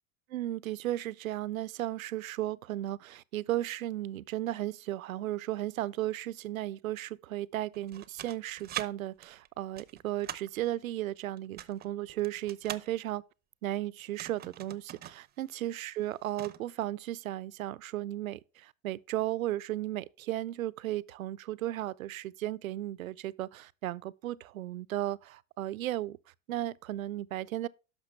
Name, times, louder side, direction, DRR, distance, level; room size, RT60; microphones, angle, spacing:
voice 1, 0.3-13.2 13.6-26.2 26.5-27.7, right 14 dB, 85° right, 0.5 m, -35 dB
sound 1, 7.7-8.9 9.2-10.6 11.4-12.9 14.0-15.2 15.5-15.6 16.0-16.6, right 11 dB, 25° right, 0.6 m, -42 dB
10.5 x 6.1 x 3.1 m
hypercardioid pair, 85°, 40 cm